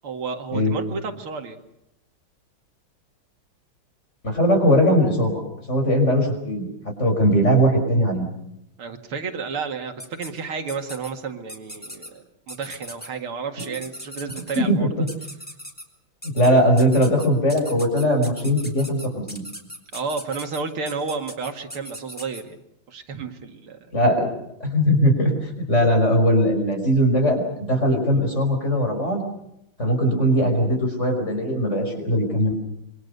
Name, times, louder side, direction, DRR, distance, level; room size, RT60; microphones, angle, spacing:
voice 1, 0.0-1.6 8.8-15.1 19.9-22.6 22.9-23.8, right 5 dB, 80° right, 5 dB, 2.9 m, -31 dB
voice 2, 4.2-5.4 5.7-6.7 7.0-8.3 14.6-15.1 16.2-19.4 23.9-24.3 24.6-29.2 29.8-32.5, equal, 30° left, 4 dB, 5.8 m, -20 dB
sound 1, 10.0-10.3 10.7-11.1 11.5-12.1 12.5-13.1 13.6-14.6 15.1-15.8 16.2-16.5 16.8-22.4, equal, 5° left, 3.1 m, -38 dB
26.5 x 24.5 x 6.8 m, 0.80 s
omnidirectional pair, 2.3 m